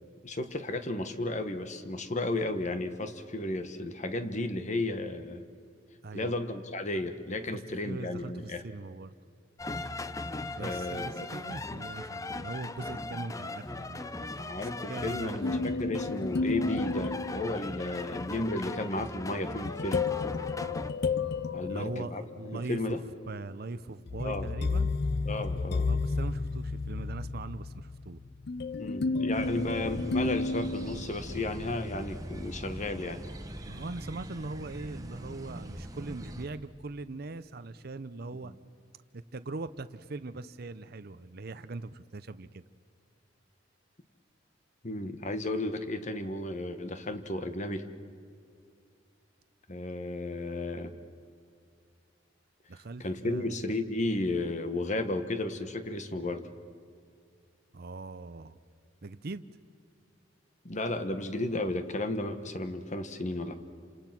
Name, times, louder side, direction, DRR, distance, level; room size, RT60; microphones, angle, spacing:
voice 1, 0.2-5.4 6.1-8.6 10.6-11.3 14.4-20.1 21.5-22.2 22.5-23.0 24.2-24.5 25.2-25.9 28.8-33.2 44.8-47.9 49.7-50.9 53.0-56.5 60.6-63.5, left 2 dB, 40° left, 9 dB, 1.4 m, -33 dB
voice 2, 7.5-9.1 10.6-15.7 21.7-23.0 23.3-24.9 25.9-28.2 33.7-38.5 39.1-42.6 52.7-53.6 57.7-58.6 59.0-59.4, right 3 dB, 55° right, 12 dB, 0.7 m, -41 dB
sound 1, 9.6-20.9, left 2 dB, 20° left, 0.7 m, -39 dB
sound 2, 15.4-18.0 19.7-22.6 24.1-31.4, left 3 dB, 60° left, 0.5 m, -32 dB
sound 3, 29.3-36.5, equal, 20° right, 1.5 m, -41 dB
28.5 x 26.5 x 6.0 m, 2.4 s
head